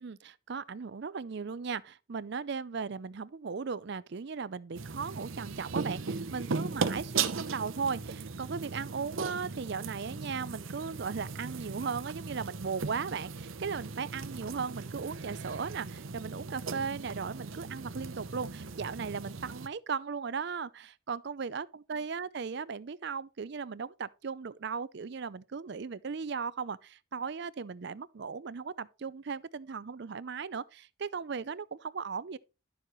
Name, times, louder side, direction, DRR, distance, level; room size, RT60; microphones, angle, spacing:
voice 1, 0.0-32.4, right 5 dB, 55° right, 0.5 m, -37 dB
sound 1, 4.7-19.7, right 4 dB, 75° right, 0.8 m, -38 dB
11.5 x 7.0 x 3.1 m
head